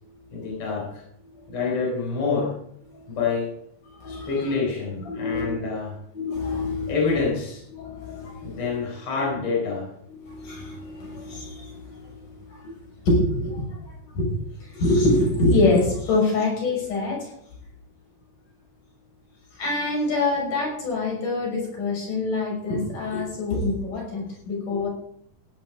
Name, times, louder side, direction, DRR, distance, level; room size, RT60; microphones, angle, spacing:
voice 1, 0.3-1.0 1.5-2.6 3.1-3.5 4.1-6.0 6.9-7.6 8.4-9.9 12.6-12.7, left 4 dB, 40° left, -3 dB, 4.8 m, -27 dB
voice 2, 3.9-4.6 5.1-5.6 6.1-6.9 7.7-8.8 10.1-17.3 19.5-24.9, left 2 dB, 65° left, -2 dB, 7.5 m, -26 dB
16.0 x 11.0 x 4.9 m, 0.70 s
omnidirectional pair, 4.0 m